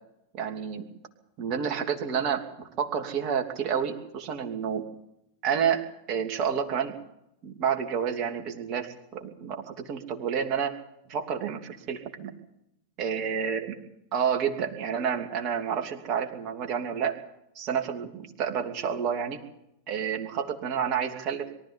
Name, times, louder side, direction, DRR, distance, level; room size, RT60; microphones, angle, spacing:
voice 1, 0.3-0.9 1.4-4.8 5.4-7.0 7.4-10.8 11.1-12.3 13.0-13.8 14.1-17.2 17.5-19.4 19.9-21.6, right 7 dB, 40° right, 4 dB, 2.9 m, -29 dB
23.5 x 13.5 x 8.3 m, 0.80 s
figure-of-eight pair, 90°, 0 cm